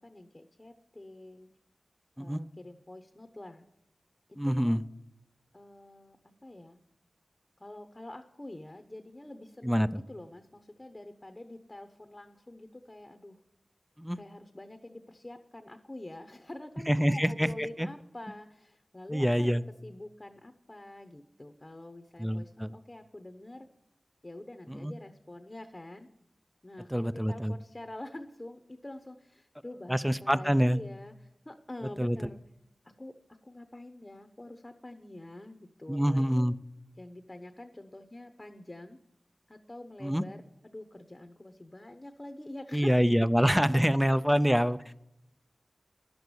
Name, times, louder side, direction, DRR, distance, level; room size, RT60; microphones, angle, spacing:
voice 1, 0.0-1.5 2.2-3.6 4.3-4.8 5.5-6.2 6.4-6.8 7.6-13.4 14.2-23.7 24.2-26.1 26.6-32.4 32.8-36.5 37.0-39.0 39.5-42.9, left 1 dB, 25° left, 8 dB, 0.9 m, -46 dB
voice 2, 4.4-4.8 9.6-10.0 14.0-14.2 16.9-17.9 19.1-19.6 22.2-22.7 24.7-24.9 26.9-27.6 29.9-30.8 32.0-32.2 35.9-36.5 40.0-40.2 42.7-44.9, equal, 5° right, 14 dB, 0.5 m, -26 dB
11.5 x 7.9 x 6.9 m, 0.85 s
wide cardioid pair, 60°, 0 cm